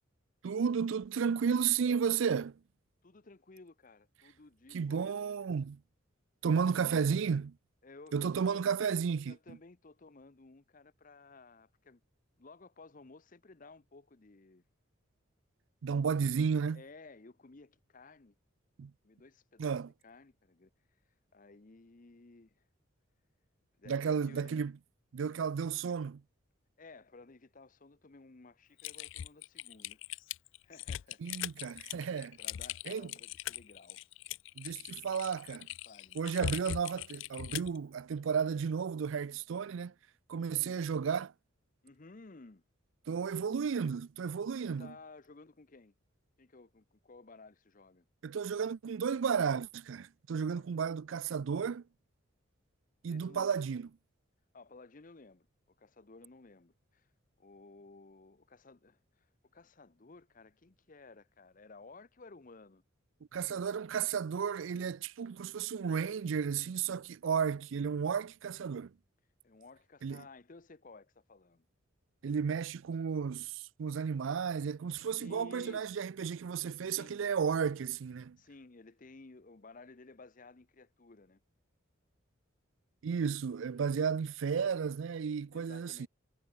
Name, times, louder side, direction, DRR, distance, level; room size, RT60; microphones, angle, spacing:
voice 1, 0.4-2.6 4.7-5.8 6.4-7.5 8.1-9.6 15.8-16.8 18.8-18.9 19.6-19.9 23.9-24.7 25.1-26.2 31.2-32.4 32.9-33.1 34.6-35.7 36.2-39.9 40.3-41.3 43.1-44.9 48.2-51.8 53.0-53.9 63.3-68.9 70.0-70.2 72.2-78.4 83.0-86.1, right 6 dB, 70° right, 0.4 m, -33 dB
voice 2, 3.0-5.5 7.8-8.7 9.2-12.0 12.4-14.6 16.1-16.2 16.7-18.3 19.0-20.7 21.3-22.5 23.8-24.6 26.8-30.0 30.6-31.4 31.6-31.8 32.4-34.0 35.9-36.3 40.5-41.0 41.8-42.6 44.6-45.9 46.4-48.0 50.5-50.7 53.1-53.5 54.5-57.1 57.4-59.3 59.5-62.8 69.4-71.7 75.2-76.0 76.9-77.2 78.4-81.4 84.1-84.2 85.5-86.1, left 3 dB, 40° left, 0.8 m, -55 dB
Typing, 28.8-37.8, left 11 dB, 65° left, 0.3 m, -41 dB
head